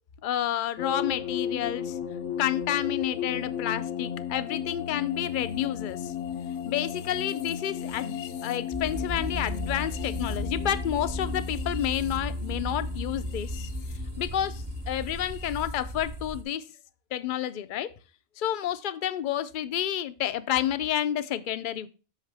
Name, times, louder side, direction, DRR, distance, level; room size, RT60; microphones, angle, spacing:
voice 1, 0.2-2.0 2.4-6.1 6.6-13.7 14.2-16.6 17.1-17.9 18.4-21.9, left 11 dB, 55° left, 14 dB, 0.6 m, -30 dB
sound 1, 0.8-15.8, left 8 dB, 80° left, 1.0 m, -35 dB
sound 2, 8.7-16.4, equal, 40° right, 1.4 m, -35 dB
8.3 x 6.4 x 3.3 m, 0.35 s
omnidirectional pair, 1.2 m